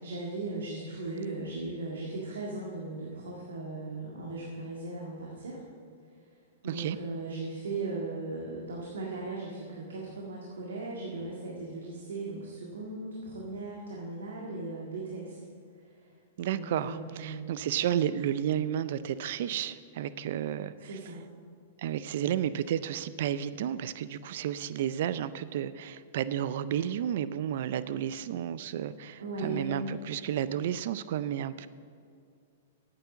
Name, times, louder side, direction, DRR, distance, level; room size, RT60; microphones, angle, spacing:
voice 1, 0.0-5.6 6.6-15.4 15.9-16.0 16.5-17.5 20.8-21.2 29.2-30.0, right 2 dB, 85° right, -3 dB, 1.8 m, -37 dB
voice 2, 6.6-7.0 16.4-20.9 21.8-31.7, right 10 dB, 65° right, 15 dB, 0.4 m, -32 dB
9.2 x 8.2 x 7.1 m, 2.3 s
hypercardioid pair, 125°, 0 cm